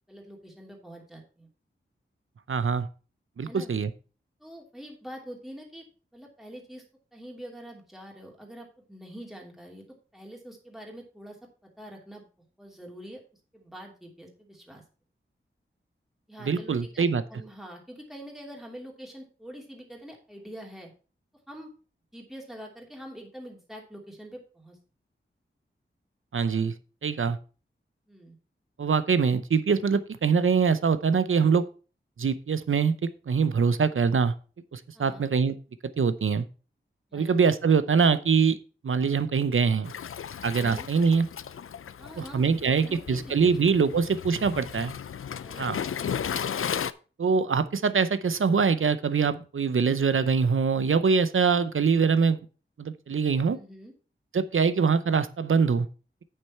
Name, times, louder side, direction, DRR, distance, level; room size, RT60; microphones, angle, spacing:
voice 1, 0.1-1.5 3.4-3.7 4.4-5.9 6.1-6.8 7.1-9.8 10.1-12.3 12.6-13.2 13.5-14.8 16.3-17.0 17.3-20.9 21.5-21.7 22.1-24.8 28.1-28.4 34.9-35.3 37.1-37.3 40.5-40.9 42.0-43.8 45.4-45.7 53.5-53.9, equal, ahead, -1 dB, 2.8 m, -45 dB
voice 2, 2.5-2.9 3.4-3.9 16.4-17.2 26.3-26.7 27.0-27.4 28.8-31.7 32.2-34.3 34.7-35.6 36.0-36.4 37.1-38.6 38.8-39.9 40.4-41.3 42.2-44.9 45.6-45.8 47.2-52.4 52.8-53.6 54.3-55.9, right 5 dB, 80° right, 14 dB, 0.7 m, -23 dB
Waves surf, 39.8-46.9, left 8 dB, 90° left, 0.4 m, -35 dB
8.7 x 6.8 x 4.3 m, 0.36 s
wide cardioid pair, 80°, 21 cm